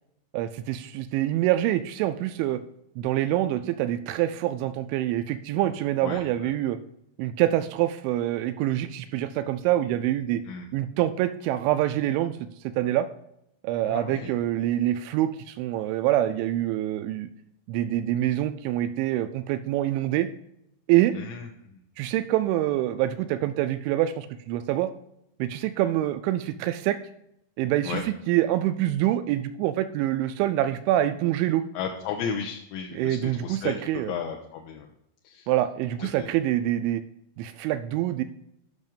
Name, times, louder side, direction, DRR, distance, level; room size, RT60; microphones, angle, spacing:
voice 1, 0.3-2.6 3.0-6.8 7.2-10.4 10.7-12.4 12.7-13.1 13.6-17.3 17.7-20.3 20.9-21.2 22.0-24.9 25.4-27.0 27.6-31.6 33.0-34.1 35.5-37.0 37.4-38.2, right 13 dB, 85° right, 11 dB, 2.7 m, -25 dB
voice 2, 6.0-6.5 10.4-10.7 13.8-14.3 21.1-21.5 27.8-28.0 31.7-33.7 34.1-34.9 35.2-35.5 36.0-36.3, left 6 dB, 80° left, 1 dB, 3.0 m, -34 dB
10.5 x 6.1 x 5.2 m, 0.79 s
omnidirectional pair, 5.7 m